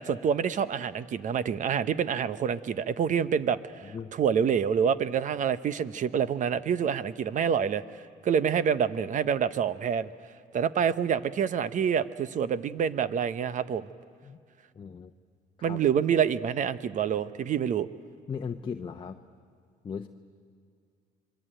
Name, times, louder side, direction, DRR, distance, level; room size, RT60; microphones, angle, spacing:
voice 1, 0.0-10.1 10.5-13.9 15.6-17.9, right 7 dB, 50° right, 14 dB, 1.0 m, -27 dB
voice 2, 3.8-4.1 14.2-14.4 14.7-15.1 15.6-15.8 18.3-19.2 19.8-20.1, left 6 dB, 30° left, 5 dB, 0.9 m, -37 dB
26.5 x 23.0 x 9.1 m, 2.3 s
cardioid pair, 110°, 17 cm